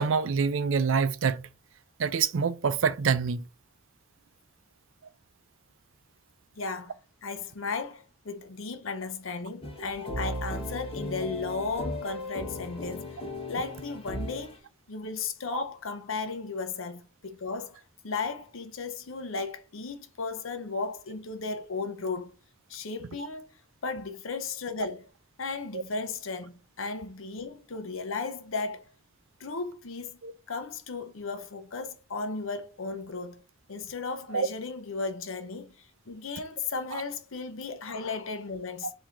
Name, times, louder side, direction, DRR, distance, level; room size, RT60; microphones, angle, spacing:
voice 1, 0.0-1.5 2.0-3.4 15.5-15.6 25.7-25.8 30.2-30.3 34.3-34.5 36.9-37.0, right 5 dB, 75° right, 0.5 m, -26 dB
voice 2, 6.6-13.2 13.5-22.3 22.7-23.5 23.8-25.0 25.4-28.9 29.4-30.2 30.5-33.4 33.7-38.9, left 4 dB, 75° left, 0.8 m, -35 dB
sound 1, 9.6-14.6, left 1 dB, 30° left, 1.3 m, -36 dB
4.5 x 2.8 x 3.7 m
head